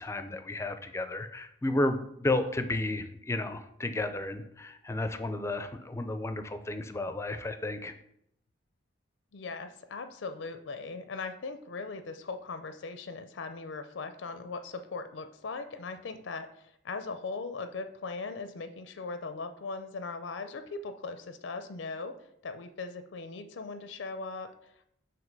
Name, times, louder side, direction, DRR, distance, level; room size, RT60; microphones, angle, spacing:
voice 1, 0.0-7.9, left 2 dB, 15° left, 8 dB, 0.4 m, -32 dB
voice 2, 9.3-22.1 22.4-24.9, left 4 dB, 85° left, 9 dB, 0.5 m, -39 dB
6.2 x 2.9 x 5.2 m, 0.74 s
head